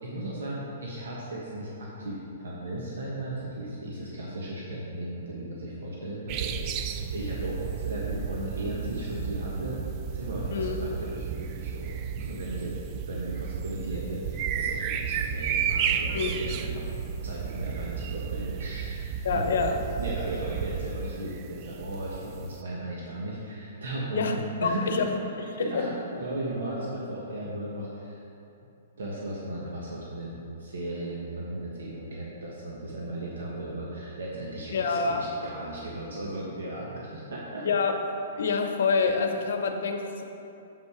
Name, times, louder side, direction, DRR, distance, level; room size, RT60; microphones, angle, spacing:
voice 1, 0.0-6.6 7.1-12.8 13.1-16.9 17.2-19.1 19.3-25.1 25.4-28.2 29.0-37.7, right 1 dB, 85° right, -5 dB, 1.4 m, -36 dB
sound 1, 6.3-22.6, right 7 dB, 35° right, 0.4 m, -33 dB
voice 2, 19.2-19.8 24.1-24.4 24.6-25.1 25.6-25.9 34.7-35.3 37.6-37.9 38.4-40.2, left 5 dB, 75° left, 5 dB, 0.8 m, -26 dB
7.5 x 5.5 x 5.0 m, 2.8 s
hypercardioid pair, 150°, 0 cm